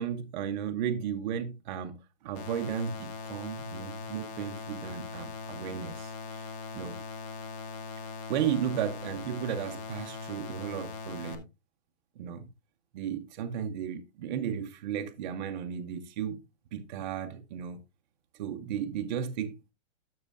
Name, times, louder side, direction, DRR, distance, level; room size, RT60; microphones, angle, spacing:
voice 1, 0.0-2.0 2.2-6.5 6.7-7.0 8.3-11.4 12.2-12.5 12.9-16.4 16.7-17.8 18.3-19.7, right 8 dB, 35° right, 0.5 m, -34 dB
sound 1, 2.3-11.3, left 4 dB, 20° left, 0.7 m, -40 dB
12.0 x 6.4 x 2.4 m
supercardioid pair, 165°, 41 cm